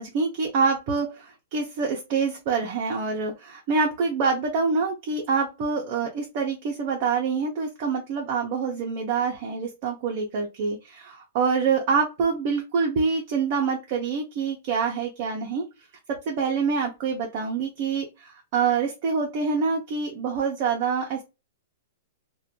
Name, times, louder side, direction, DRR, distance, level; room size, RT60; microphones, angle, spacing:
voice 1, 0.0-15.6 16.3-21.2, right 5 dB, 35° right, 0 dB, 0.5 m, -26 dB
2.5 x 2.1 x 2.7 m, 0.27 s
hypercardioid pair, 170°, 0 cm